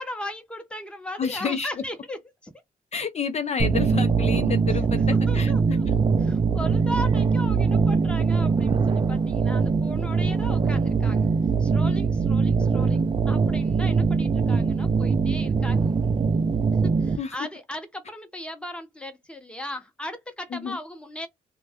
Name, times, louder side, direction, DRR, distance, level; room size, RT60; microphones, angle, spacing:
voice 1, 0.0-2.5 4.7-4.9 5.3-5.9 6.2-11.3 11.6-16.0 17.0-21.3, left 1 dB, 5° left, 0.7 m, -37 dB
voice 2, 1.2-1.7 2.9-5.8 17.2-17.4 20.5-20.8, left 6 dB, 45° left, 0.4 m, -29 dB
sound 1, 3.6-17.2, right 5 dB, 30° right, 0.4 m, -22 dB
2.6 x 2.2 x 3.4 m
cardioid pair, 115°, 16 cm